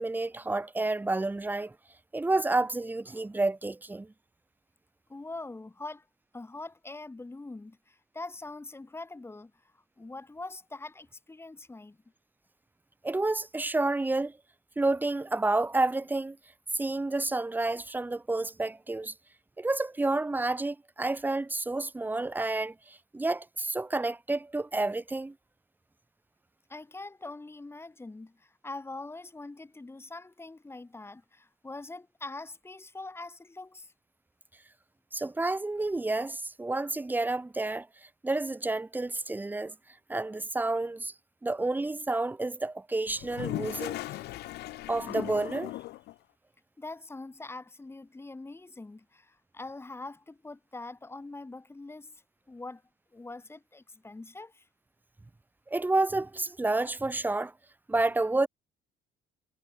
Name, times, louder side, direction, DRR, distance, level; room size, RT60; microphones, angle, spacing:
voice 1, 0.0-1.8 2.1-4.1 13.0-14.4 14.8-16.4 16.7-19.1 19.6-25.3 35.1-39.7 40.1-41.1 41.4-44.0 44.9-45.7 55.7-57.5 57.9-58.5, right 2 dB, 10° right, 0.8 m, -30 dB
voice 2, 5.1-6.1 6.3-12.0 26.7-33.9 46.8-52.8 53.1-54.7, left 2 dB, 15° left, 2.3 m, -43 dB
Toilet flush, 43.1-46.1, left 17 dB, 75° left, 0.8 m, -37 dB
cardioid pair, 110°, 17 cm